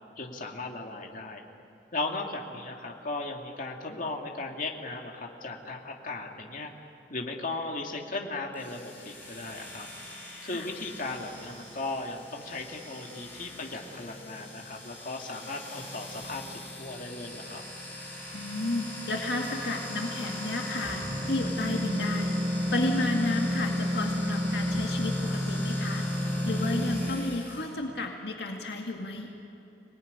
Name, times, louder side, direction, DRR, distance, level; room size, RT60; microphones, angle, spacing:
voice 1, 0.2-1.4 1.9-6.7 7.1-9.9 10.4-17.6, left 2 dB, 50° left, 1 dB, 2.4 m, -37 dB
sound 1, 8.5-27.6, left 1 dB, 10° left, 7.7 m, -34 dB
voice 2, 18.3-22.3 22.7-29.3, left 2 dB, 65° left, 1 dB, 2.1 m, -32 dB
26.0 x 19.0 x 9.7 m, 3.0 s
head